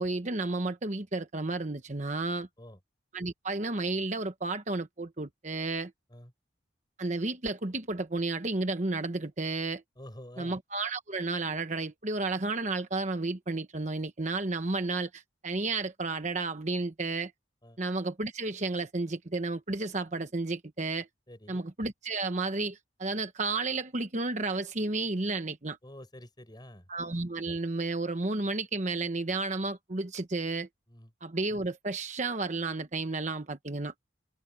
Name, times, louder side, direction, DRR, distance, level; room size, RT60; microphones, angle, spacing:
voice 1, 0.0-2.5 3.1-5.9 7.0-9.8 10.4-17.3 17.8-21.1 21.5-25.8 26.9-30.7 31.2-33.9, right 3 dB, 40° right, 1.1 m, -32 dB
voice 2, 10.0-10.6 17.6-17.8 21.3-21.6 25.8-26.9 30.9-31.1, left 1 dB, 20° left, 6.7 m, -48 dB
head